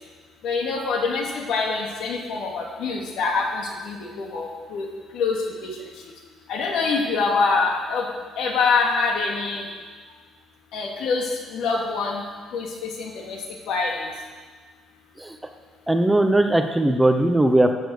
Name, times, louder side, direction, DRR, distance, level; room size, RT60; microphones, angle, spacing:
voice 1, 0.4-4.9 5.1-5.7 6.5-8.0 8.4-9.6 10.7-11.2 11.5-12.2 12.5-12.7 13.0-13.4 13.7-14.0, left 4 dB, 70° left, 0 dB, 2.7 m, -25 dB
voice 2, 15.9-17.7, right 1 dB, 5° right, 5 dB, 0.8 m, -19 dB
15.0 x 8.5 x 6.6 m, 1.5 s
cardioid pair, 150°, 0 cm